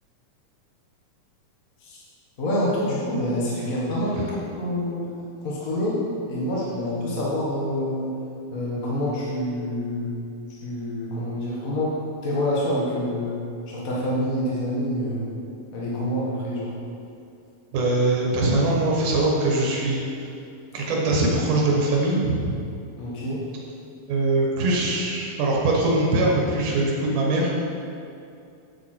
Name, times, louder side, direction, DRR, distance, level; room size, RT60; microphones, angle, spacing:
voice 1, 2.4-5.1 5.4-6.0 6.3-8.1 8.5-10.1 10.5-11.9 12.2-13.4 13.7-15.3 15.7-16.7 23.0-23.4, left 1 dB, 45° left, -6 dB, 1.1 m, -27 dB
voice 2, 17.7-20.0 20.7-22.6 24.1-27.5, right 2 dB, 90° right, -3 dB, 2.9 m, -22 dB
9.1 x 8.1 x 4.4 m, 2.5 s
omnidirectional pair, 3.5 m